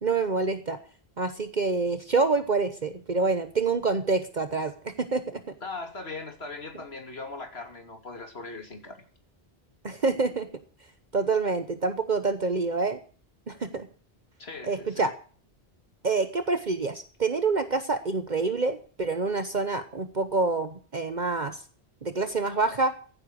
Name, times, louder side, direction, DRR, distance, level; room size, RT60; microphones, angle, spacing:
voice 1, 0.0-0.8 1.2-5.4 9.8-10.5 11.1-13.0 13.5-13.9 14.6-15.1 16.0-21.6 22.0-22.9, right 3 dB, 45° right, 9 dB, 1.2 m, -27 dB
voice 2, 5.6-9.0 14.4-15.1, left 3 dB, 75° left, 5 dB, 3.2 m, -39 dB
15.5 x 10.0 x 6.4 m, 0.42 s
omnidirectional pair, 1.1 m